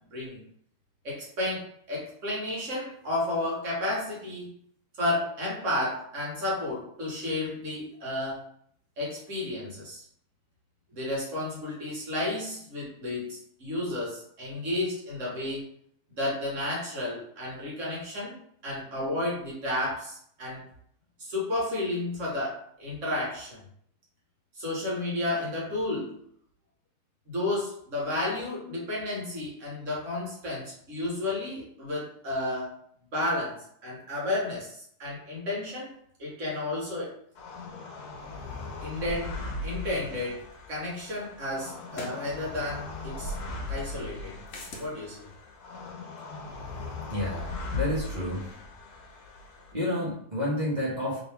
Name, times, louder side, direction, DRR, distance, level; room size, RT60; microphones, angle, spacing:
voice 1, 0.1-0.4 1.0-4.5 5.0-8.4 9.0-10.0 10.9-15.6 16.1-20.6 21.2-23.6 24.6-26.2 27.3-32.7 33.1-37.2 38.8-40.4 40.7-43.3 43.7-44.3 44.8-45.3, left 1 dB, 55° right, -4 dB, 1.7 m, -32 dB
sound 1, 37.3-49.7, left 3 dB, 80° left, 1.2 m, -38 dB
sound 2, 40.5-40.6 41.9-42.3 44.5-44.9, left 2 dB, 60° left, 1.0 m, -40 dB
voice 2, 47.1-48.5 49.7-51.2, left 1 dB, 30° right, -6 dB, 1.4 m, -30 dB
3.4 x 3.0 x 3.5 m, 0.65 s
omnidirectional pair, 1.6 m